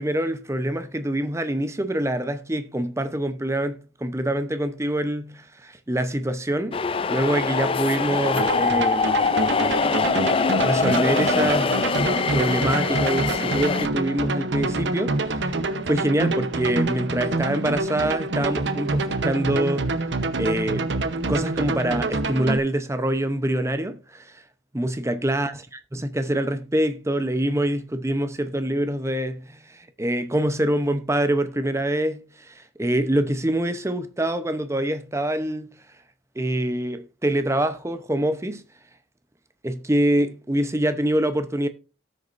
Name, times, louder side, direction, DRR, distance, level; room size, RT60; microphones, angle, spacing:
voice 1, 0.0-6.8 7.1-9.1 10.6-11.9 12.3-15.4 15.9-19.9 20.4-20.9 21.3-24.3 24.7-25.5 25.9-35.7 36.4-38.6 39.6-41.7, right 1 dB, 15° right, 0.7 m, -25 dB
sound 1, 6.7-13.9, left 4 dB, 30° left, 0.4 m, -23 dB
sound 2, 8.4-22.6, right 2 dB, 70° right, 0.9 m, -26 dB
17.5 x 6.6 x 2.5 m
head